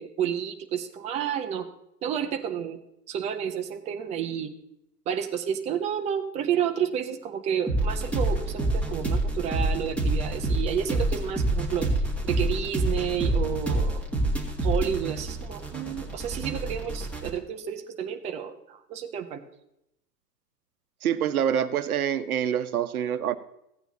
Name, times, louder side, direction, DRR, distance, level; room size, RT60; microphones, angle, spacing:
voice 1, 0.0-1.7 2.0-2.8 3.1-4.5 5.1-11.9 12.2-14.0 14.6-19.4, right 8 dB, 15° right, 7 dB, 0.6 m, -30 dB
sound 1, 7.7-17.3, right 2 dB, 5° left, 1.8 m, -27 dB
voice 2, 21.0-23.3, right 9 dB, 65° right, 13 dB, 0.9 m, -26 dB
15.5 x 9.0 x 2.7 m, 0.81 s
figure-of-eight pair, 110°, 48 cm